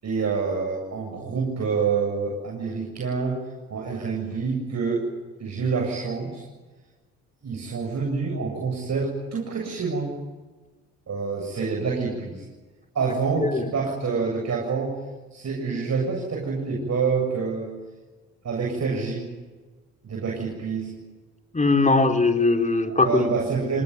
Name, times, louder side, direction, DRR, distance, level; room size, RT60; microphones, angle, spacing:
voice 1, 0.0-3.4 3.7-5.1 5.4-6.4 7.4-10.1 11.1-12.4 12.9-15.0 15.3-17.7 18.4-19.3 20.0-20.9 22.8-23.8, right 5 dB, 50° right, -1 dB, 7.6 m, -27 dB
voice 2, 21.5-23.4, left 3 dB, 20° left, 5 dB, 4.1 m, -20 dB
29.5 x 19.5 x 9.6 m, 1.3 s
supercardioid pair, 60°, 34 cm